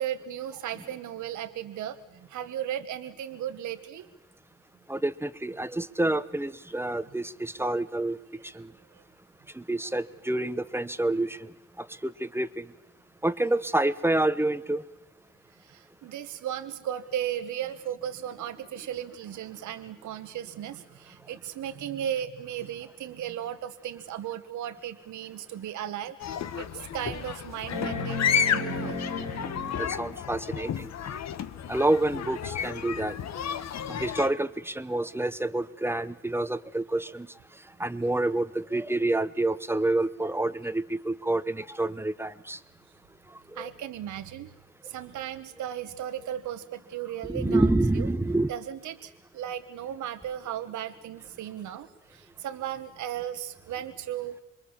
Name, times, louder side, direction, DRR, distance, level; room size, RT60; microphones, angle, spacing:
voice 1, 0.0-2.0 2.3-4.1 15.6-26.1 26.6-29.0 43.6-44.5 44.8-48.1 48.5-54.4, right 10 dB, 75° right, 9 dB, 1.3 m, -36 dB
voice 2, 4.9-8.2 8.6-8.7 9.6-11.4 12.2-12.6 13.2-14.8 29.8-30.9 31.7-33.2 33.9-37.3 37.8-42.6 43.6-43.7 47.3-48.5, right 2 dB, 10° right, 14 dB, 1.0 m, -28 dB
sound 1, 25.6-25.7 26.2-26.3 27.7-30.2 31.9-32.0, left 3 dB, 85° left, 4.3 m, -34 dB
sound 2, 26.2-34.3, left 8 dB, 60° left, 1.2 m, -32 dB
26.5 x 23.0 x 7.3 m, 0.96 s
cardioid pair, 90°, 30 cm